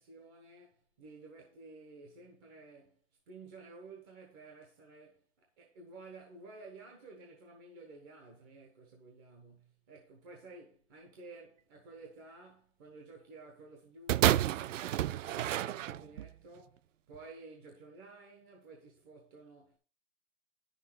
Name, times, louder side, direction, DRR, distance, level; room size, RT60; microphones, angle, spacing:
voice 1, 0.0-19.8, right 3 dB, 20° right, 1.1 m, -53 dB
sound 1, 14.1-16.3 17.1-17.2, right 12 dB, 80° right, 0.5 m, -30 dB
10.0 x 6.6 x 4.7 m
hypercardioid pair, 175°, 37 cm